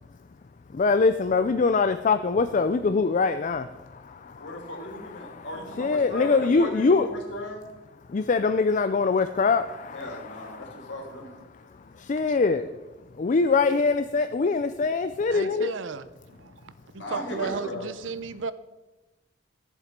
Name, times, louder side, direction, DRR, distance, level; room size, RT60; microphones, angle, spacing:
voice 1, 0.7-4.6 5.1-5.5 5.8-7.1 8.1-10.9 12.0-12.7 13.2-15.7, left 4 dB, 40° left, 9 dB, 0.4 m, -24 dB
voice 2, 4.4-7.6 9.9-11.3 17.0-17.8, left 1 dB, 65° left, 1 dB, 2.8 m, -36 dB
voice 3, 15.3-18.5, right 5 dB, 80° right, 14 dB, 0.7 m, -35 dB
14.0 x 7.4 x 5.2 m, 1.1 s
head